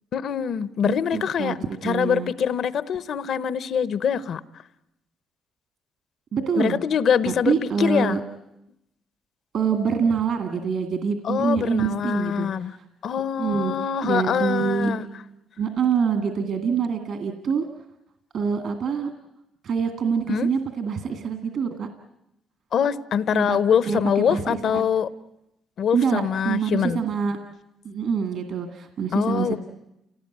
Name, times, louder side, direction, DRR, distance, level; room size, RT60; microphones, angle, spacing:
voice 1, 0.1-1.6 1.8-4.4 6.6-8.2 11.2-12.7 13.0-15.1 20.3-20.5 22.7-25.1 25.8-27.0 29.1-29.6, left 7 dB, 65° left, 16 dB, 0.9 m, -24 dB
voice 2, 0.8-1.6 1.8-2.3 6.3-6.8 7.2-8.2 9.5-12.5 13.4-13.8 14.0-14.9 15.6-17.7 18.3-19.1 19.6-21.9 23.3-23.6 23.9-24.0 24.3-24.8 25.9-27.4 27.8-29.6, right 6 dB, 65° right, 6 dB, 2.1 m, -25 dB
29.0 x 18.0 x 9.4 m, 0.86 s
cardioid pair, 90°, 0 cm